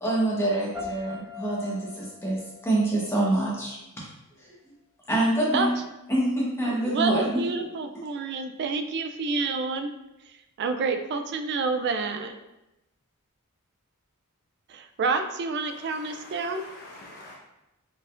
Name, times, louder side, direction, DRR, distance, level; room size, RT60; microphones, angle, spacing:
voice 1, 0.0-3.8 4.4-4.5 5.1-5.7 6.1-7.4, right 1 dB, 10° left, -5 dB, 1.0 m, -26 dB
sound 1, 0.7-3.7, left 5 dB, 10° right, 1.4 m, -42 dB
voice 2, 6.7-9.9 10.6-12.3 14.7-16.6, right 4 dB, 50° right, 7 dB, 0.3 m, -28 dB
voice 3, 15.7-17.3, left 1 dB, 45° left, -4 dB, 0.8 m, -46 dB
4.4 x 3.5 x 2.4 m, 0.94 s
head